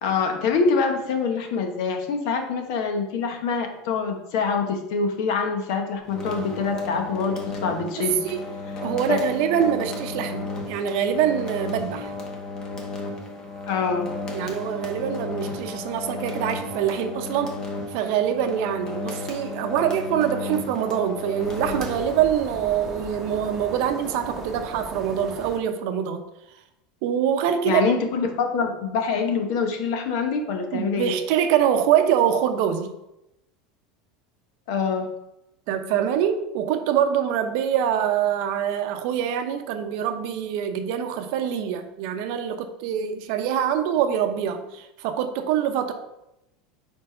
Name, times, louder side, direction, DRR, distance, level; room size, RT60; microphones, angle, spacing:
voice 1, 0.0-8.2 9.1-9.2 13.7-14.1 27.6-31.2 34.7-35.1, left 5 dB, 60° left, 5 dB, 1.0 m, -25 dB
sound 1, 6.0-22.5, left 3 dB, 20° left, 0.9 m, -34 dB
voice 2, 8.0-8.4 8.8-12.1 14.3-17.6 17.9-26.2 27.0-27.8 30.7-32.9 35.7-45.9, right 9 dB, 55° right, 7 dB, 0.7 m, -24 dB
sound 2, 21.4-25.6, right 1 dB, 10° right, 1.0 m, -38 dB
4.7 x 4.4 x 5.4 m, 0.88 s
supercardioid pair, 160°, 3 cm